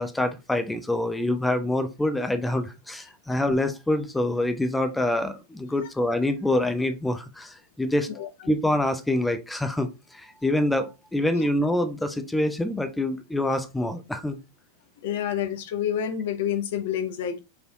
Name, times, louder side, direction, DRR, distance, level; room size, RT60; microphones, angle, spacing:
voice 1, 0.0-8.1 8.5-14.4, left 1 dB, 5° left, 0.5 m, -26 dB
voice 2, 15.0-17.4, left 9 dB, 55° left, 0.7 m, -28 dB
4.9 x 3.2 x 2.7 m
figure-of-eight pair, 90°, 0 cm